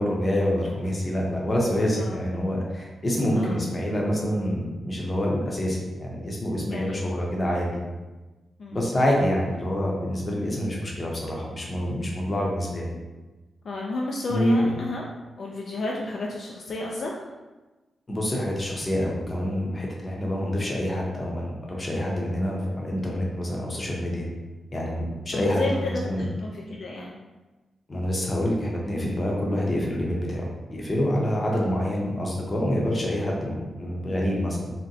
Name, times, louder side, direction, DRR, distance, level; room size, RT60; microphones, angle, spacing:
voice 1, 0.0-7.8 8.7-12.9 14.3-14.7 18.1-24.3 24.7-26.2 27.9-34.7, equal, 30° left, -2 dB, 0.6 m, -26 dB
voice 2, 6.7-7.1 8.6-8.8 13.6-15.1 15.4-17.1 25.3-27.2 31.5-31.7, left 2 dB, 60° left, -2 dB, 0.3 m, -32 dB
2.7 x 2.1 x 3.8 m, 1.2 s
wide cardioid pair, 120°, 0 cm